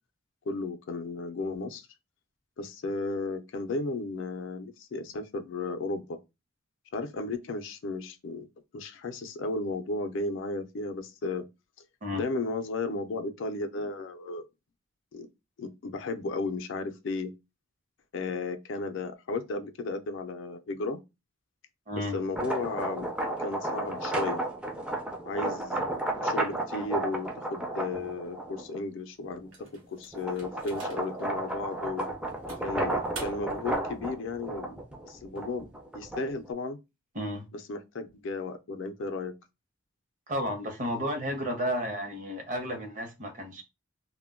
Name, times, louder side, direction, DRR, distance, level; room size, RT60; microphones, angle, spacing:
voice 1, 0.5-1.9 2.6-6.2 6.9-8.5 8.7-11.5 12.1-14.5 15.1-15.3 15.6-17.3 18.1-21.0 22.0-23.1 23.4-24.4 25.2-25.9 26.2-29.5 29.9-32.1 32.6-35.7 35.9-36.8 37.5-39.3, left 3 dB, 70° left, 0.4 m, -34 dB
sound 1, 22.2-28.8 29.3-36.5, right 1 dB, 5° right, 0.3 m, -33 dB
sound 2, 29.5-31.2 31.8-31.9 32.5-33.7, right 4 dB, 75° right, 0.7 m, -46 dB
voice 2, 40.3-43.6, equal, 40° right, 0.7 m, -32 dB
2.1 x 2.1 x 3.4 m
head